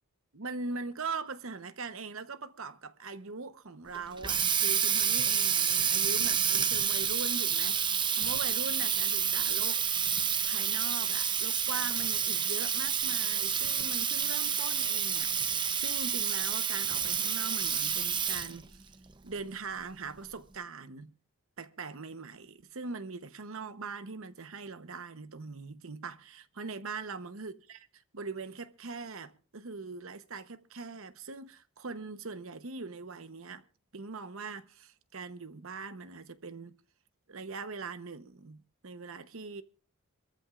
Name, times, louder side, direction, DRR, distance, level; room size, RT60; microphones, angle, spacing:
voice 1, 0.3-9.8 10.4-18.9 19.2-21.1 21.6-33.6 33.9-36.8 37.3-39.6, right 4 dB, 70° right, 0.9 m, -41 dB
Water tap faucet, 3.9-18.6, right 7 dB, 20° right, 0.7 m, -29 dB
26.0 x 14.0 x 2.5 m
head